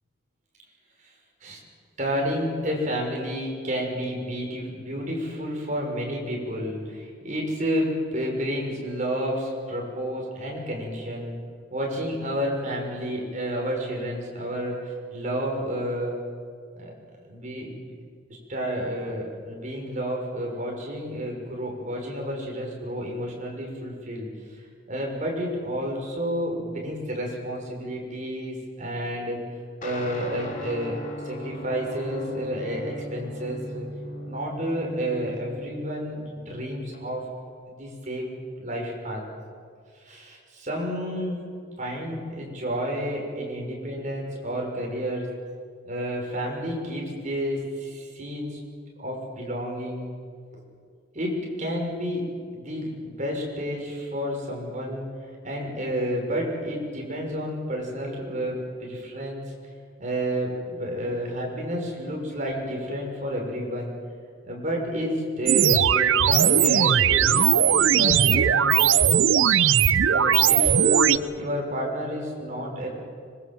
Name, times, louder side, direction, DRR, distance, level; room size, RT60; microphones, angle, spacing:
voice 1, 2.0-11.3 11.7-16.2 16.8-16.9 17.3-17.9 18.3-29.4 29.8-31.0 31.2-33.9 34.3-37.3 37.7-39.2 40.0-41.4 41.8-45.3 45.8-48.6 49.0-50.1 51.1-55.1 55.4-59.4 60.0-63.9 64.4-69.3 70.0-72.9, equal, 40° right, 0 dB, 6.4 m, -30 dB
Guitar, 29.8-37.5, equal, 40° left, 2.8 m, -39 dB
sound 1, 65.5-71.2, right 9 dB, 80° right, 0.6 m, -19 dB
25.5 x 21.5 x 7.7 m, 2.1 s
head